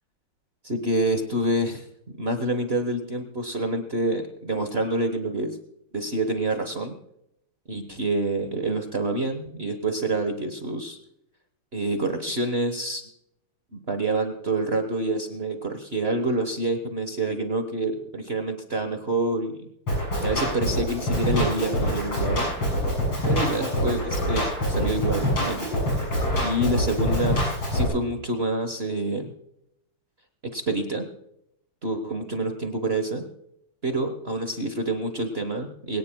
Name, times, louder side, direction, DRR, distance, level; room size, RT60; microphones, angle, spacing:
voice 1, 0.6-5.6 5.9-6.9 7.7-11.0 11.7-13.0 13.7-19.6 20.2-22.5 23.2-25.7 26.4-29.3 30.5-31.0 31.8-33.2 33.8-36.0, right 2 dB, 35° right, 6 dB, 1.2 m, -27 dB
Drum kit, 19.9-27.9, equal, 80° left, 7.8 m, -25 dB
23.0 x 18.0 x 2.3 m, 0.80 s
omnidirectional pair, 2.4 m